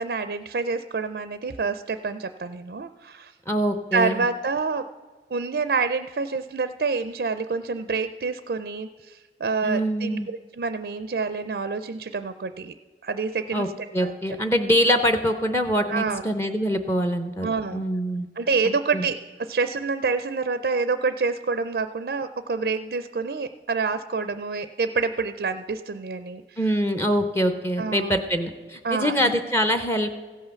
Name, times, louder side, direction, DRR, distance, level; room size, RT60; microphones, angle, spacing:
voice 1, 0.0-3.3 3.9-4.9 5.3-12.7 13.0-13.7 14.0-14.4 15.9-16.2 17.4-17.8 18.4-26.6 27.8-28.1 28.8-29.3, right 4 dB, 60° right, 10 dB, 0.4 m, -27 dB
voice 2, 3.5-4.2 9.6-10.3 13.5-13.7 13.9-17.5 17.7-18.3 18.6-19.1 26.6-30.2, equal, 15° left, 7 dB, 0.6 m, -24 dB
16.0 x 5.6 x 6.9 m, 1.4 s
head